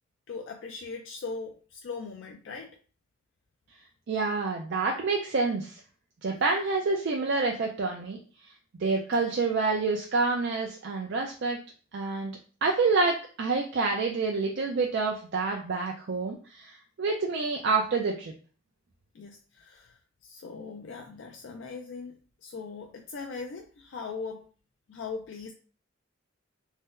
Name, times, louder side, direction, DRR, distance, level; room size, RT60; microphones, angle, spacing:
voice 1, 0.3-2.8 9.2-9.3 19.1-19.9 20.2-24.5 24.9-25.5, left 4 dB, 65° left, 3 dB, 0.3 m, -40 dB
voice 2, 4.1-5.8 6.2-8.2 8.8-11.6 11.9-12.3 12.6-18.3, right 4 dB, 60° right, 1 dB, 0.4 m, -28 dB
2.7 x 2.1 x 3.5 m, 0.38 s
head